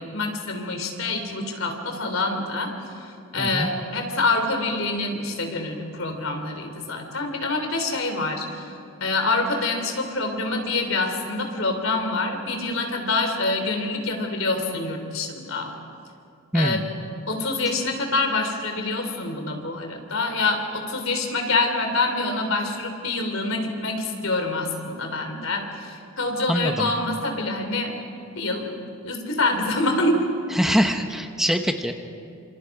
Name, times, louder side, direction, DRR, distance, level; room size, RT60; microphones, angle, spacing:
voice 1, 0.0-2.7 3.3-8.7 9.0-15.7 16.5-16.9 17.3-27.9 28.4-30.3, left 2 dB, 75° left, 4 dB, 3.5 m, -26 dB
voice 2, 26.5-26.9 30.5-31.9, equal, ahead, 5 dB, 0.9 m, -23 dB
27.5 x 26.5 x 4.9 m, 2.5 s
head